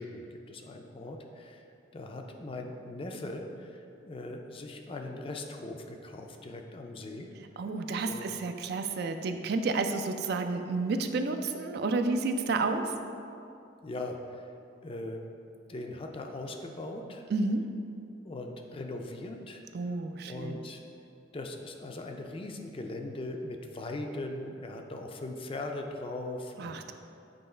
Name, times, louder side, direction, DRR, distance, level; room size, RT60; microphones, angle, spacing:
voice 1, 0.0-1.6 1.9-3.7 4.0-7.3 7.9-8.3 13.8-14.5 14.8-15.2 15.7-17.3 18.2-20.0 20.3-20.8 21.3-26.8, left 2 dB, 30° left, 3 dB, 0.4 m, -40 dB
voice 2, 7.6-12.9 17.3-17.6 19.7-20.6 26.6-26.9, right 3 dB, 55° right, 7 dB, 0.3 m, -30 dB
7.8 x 3.1 x 4.3 m, 2.6 s
head